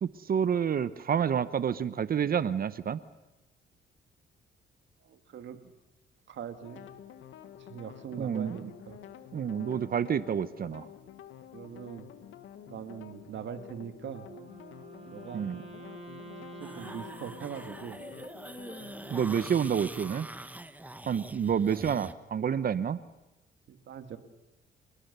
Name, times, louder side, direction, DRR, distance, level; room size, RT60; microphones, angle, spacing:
voice 1, 0.0-3.0 8.2-8.6 9.3-10.9 15.3-15.6 19.1-20.3 21.1-23.0, right 8 dB, 50° right, 15 dB, 0.9 m, -29 dB
voice 2, 5.0-5.7 6.3-6.8 7.6-9.0 11.5-12.1 12.7-14.3 15.0-15.5 16.6-18.0 21.7-21.9 23.7-24.2, right 8 dB, 65° right, 8 dB, 2.2 m, -42 dB
sound 1, 6.6-19.6, left 10 dB, 80° left, 1.7 m, -49 dB
Wind instrument woodwind instrument, 14.2-18.5, right 3 dB, 30° right, 6.7 m, -48 dB
sound 2, 16.6-22.1, right 1 dB, 10° right, 1.2 m, -44 dB
28.5 x 20.0 x 6.9 m, 1.0 s
cardioid pair, 90°, 20 cm